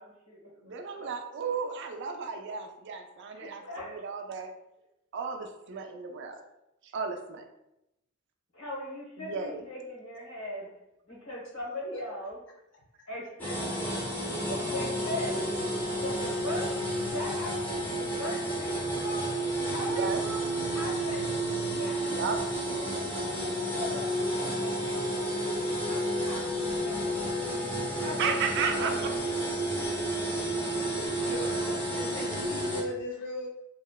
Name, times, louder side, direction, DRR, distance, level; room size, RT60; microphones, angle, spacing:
voice 1, 0.0-1.1 3.3-4.0 8.5-10.7 11.1-12.4 13.1-13.9 14.3-15.4 15.9-19.3 19.6-20.5 20.7-28.4 28.7-29.3, left 1 dB, 90° left, -4 dB, 1.0 m, -40 dB
voice 2, 0.6-4.5 5.1-6.4 6.9-7.4 9.2-9.6 19.9-20.2 22.0-22.4 27.6-29.1 31.0-31.1, right 5 dB, 55° right, 5 dB, 0.3 m, -34 dB
sound 1, 13.4-32.8, right 1 dB, 10° left, 0.5 m, -31 dB
voice 3, 31.2-33.5, left 1 dB, 60° left, 0 dB, 0.6 m, -38 dB
2.8 x 2.0 x 2.2 m, 0.86 s
head